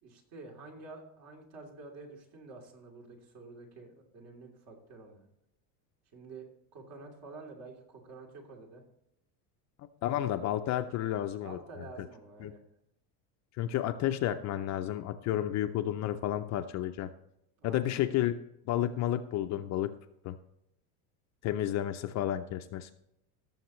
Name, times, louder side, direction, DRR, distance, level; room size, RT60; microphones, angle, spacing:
voice 1, 0.0-5.3 6.1-6.5 6.7-8.8 11.4-12.6 17.6-18.0, right 3 dB, 55° right, 1 dB, 3.0 m, -49 dB
voice 2, 10.0-11.6 12.4-12.5 13.6-17.1 17.6-18.4 18.7-19.9 20.2-20.4 21.4-22.9, left 12 dB, 35° left, 7 dB, 0.4 m, -31 dB
17.5 x 7.1 x 3.1 m, 0.82 s
cardioid pair, 150°, 48 cm